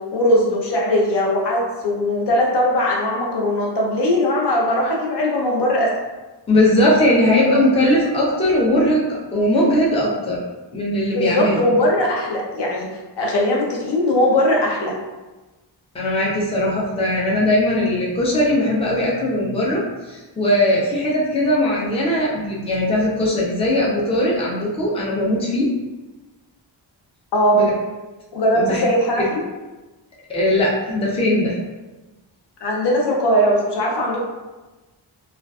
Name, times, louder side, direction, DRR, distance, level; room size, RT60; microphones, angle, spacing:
voice 1, 0.1-5.9 11.1-12.9 13.2-14.9 27.3-27.7 28.3-29.4 32.6-34.3, equal, 60° left, -3 dB, 0.7 m, -19 dB
voice 2, 6.5-10.4 10.7-11.6 15.9-25.7 27.5-27.7 28.6-28.8 29.2-29.3 30.3-31.6, left 1 dB, 15° left, -4 dB, 0.4 m, -19 dB
2.4 x 2.3 x 2.3 m, 1.1 s
wide cardioid pair, 150°, 46 cm